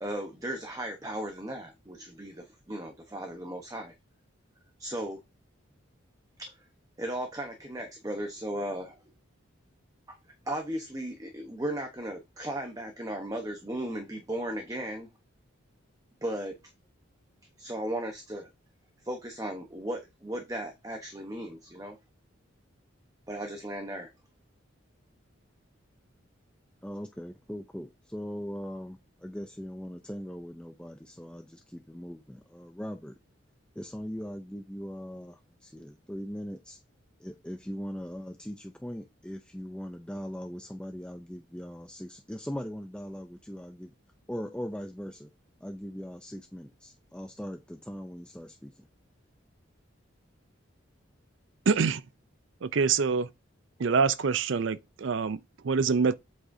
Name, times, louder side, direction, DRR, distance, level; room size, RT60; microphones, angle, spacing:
voice 1, 0.0-3.9 4.8-5.2 6.4-6.7 7.0-9.0 10.1-10.2 10.5-15.1 16.2-16.5 17.6-18.5 19.0-22.0 23.3-24.1, right 1 dB, 15° right, 0.9 m, -36 dB
voice 2, 26.8-33.2 33.8-36.8 37.2-43.9 44.3-45.3 45.6-48.8, equal, 5° left, 0.4 m, -40 dB
voice 3, 51.7-52.0 52.6-53.3 53.8-56.2, right 5 dB, 65° right, 0.5 m, -25 dB
8.0 x 6.2 x 2.7 m
head